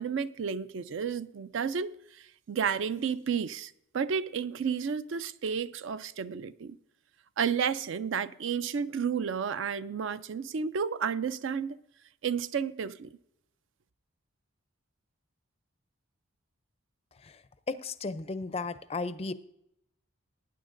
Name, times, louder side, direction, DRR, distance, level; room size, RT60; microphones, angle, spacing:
voice 1, 0.0-6.8 7.4-11.8 12.2-13.1, right 6 dB, 60° right, 0.4 m, -32 dB
voice 2, 17.7-19.3, left 3 dB, 30° left, 0.4 m, -34 dB
18.5 x 9.5 x 2.5 m
head